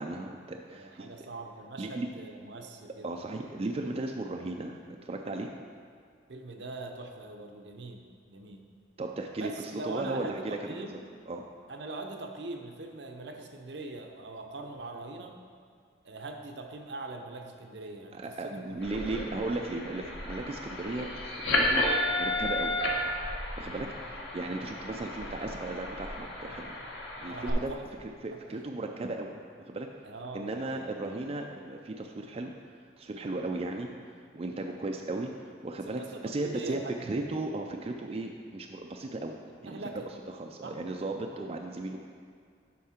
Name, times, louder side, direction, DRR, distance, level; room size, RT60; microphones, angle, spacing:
voice 1, 0.0-1.1 1.8-2.1 3.0-5.5 9.0-9.5 9.8-10.6 10.9-11.0 11.3-11.4 18.1-21.1 21.5-22.7 23.6-26.8 27.2-27.7 28.0-29.9 30.3-32.5 33.0-33.9 34.3-35.3 35.6-39.3 39.6-39.8 40.3-42.0, right 2 dB, 35° right, 2 dB, 0.4 m, -36 dB
voice 2, 0.7-3.1 6.3-8.7 9.4-11.0 11.7-15.4 16.0-19.0 23.6-23.9 27.3-27.8 28.3-28.7 30.0-30.8 34.6-34.9 36.0-37.3 39.7-40.1 40.6-40.8 41.3-41.5, right 2 dB, 70° right, 4 dB, 0.7 m, -42 dB
sound 1, 18.8-27.5, left 1 dB, 85° left, 1.2 m, -33 dB
8.4 x 5.6 x 4.3 m, 2.2 s
head